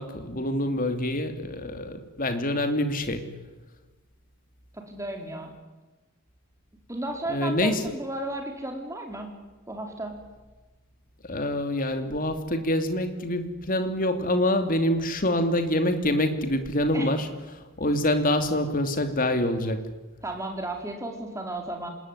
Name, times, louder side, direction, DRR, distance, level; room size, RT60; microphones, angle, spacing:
voice 1, 0.0-3.2 7.3-7.8 11.3-17.3 17.8-19.9, left 1 dB, 40° left, 7 dB, 2.7 m, -26 dB
voice 2, 4.7-5.5 6.9-9.3 9.7-10.2 16.9-17.1 20.2-21.9, right 1 dB, 15° right, 3 dB, 4.3 m, -34 dB
27.0 x 20.5 x 9.8 m, 1.2 s
head